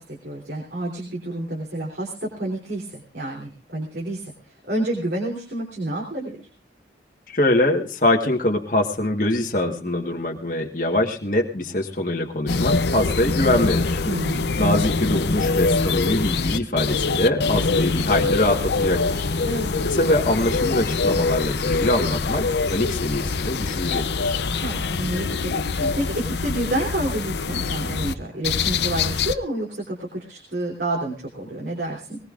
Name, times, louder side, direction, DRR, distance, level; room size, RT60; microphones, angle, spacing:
voice 1, 0.0-6.4 14.0-14.6 19.4-19.7 24.5-32.2, right 1 dB, 70° right, -2 dB, 3.4 m, -29 dB
voice 2, 7.3-14.0 14.6-19.3 19.8-24.4, left 1 dB, 45° left, 1 dB, 1.5 m, -23 dB
sound 1, 12.5-28.1 28.4-29.3, left 4 dB, 75° left, 0.7 m, -24 dB
21.0 x 19.0 x 2.5 m, 0.38 s
head